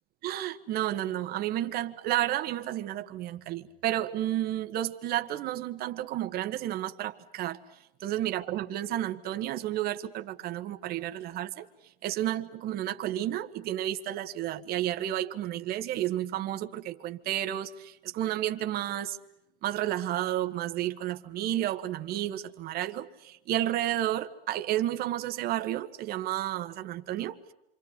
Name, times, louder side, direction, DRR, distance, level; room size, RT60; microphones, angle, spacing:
voice 1, 0.2-7.6 8.0-11.7 12.0-19.2 19.6-27.5, right 13 dB, 30° right, 1.7 m, -31 dB
27.5 x 26.5 x 8.1 m
hypercardioid pair, 135°, 29 cm